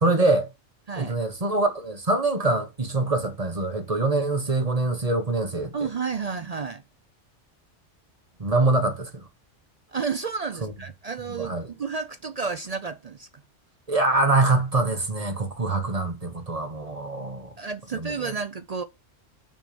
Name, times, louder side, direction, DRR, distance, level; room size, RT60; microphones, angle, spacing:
voice 1, 0.0-0.5 1.0-5.9 8.4-9.2 10.6-10.7 11.4-11.7 13.9-17.5 17.9-18.3, right 2 dB, 30° right, 1.3 m, -24 dB
voice 2, 5.7-6.8 9.9-13.3 17.6-18.8, right 5 dB, 50° right, 0.4 m, -31 dB
6.2 x 5.6 x 6.8 m
omnidirectional pair, 1.2 m